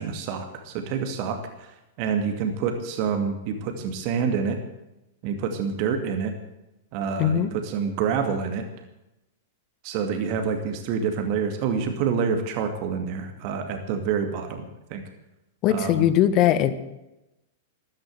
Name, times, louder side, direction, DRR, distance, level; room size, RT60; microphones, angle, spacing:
voice 1, 0.0-1.7 2.0-4.6 5.2-6.3 6.9-8.6 9.8-15.0 15.7-16.0, right 6 dB, 45° right, 6 dB, 2.3 m, -27 dB
voice 2, 7.2-7.5 15.6-16.7, left 11 dB, 40° left, 13 dB, 1.5 m, -20 dB
14.0 x 13.0 x 8.0 m, 0.94 s
figure-of-eight pair, 100°, 0 cm